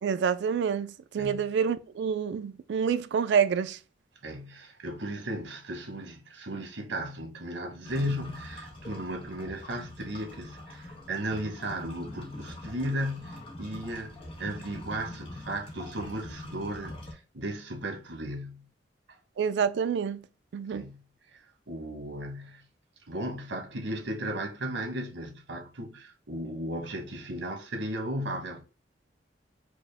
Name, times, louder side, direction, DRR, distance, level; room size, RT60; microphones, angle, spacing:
voice 1, 0.0-3.8 19.4-20.2 20.5-20.8, right 7 dB, 70° right, 0.3 m, -27 dB
voice 2, 1.2-1.5 4.2-18.7 20.7-21.0 21.3-22.6 23.1-28.6, right 1 dB, 90° right, 1.0 m, -35 dB
sound 1, 7.8-17.1, left 1 dB, 30° left, 0.9 m, -44 dB
4.7 x 2.1 x 3.3 m
head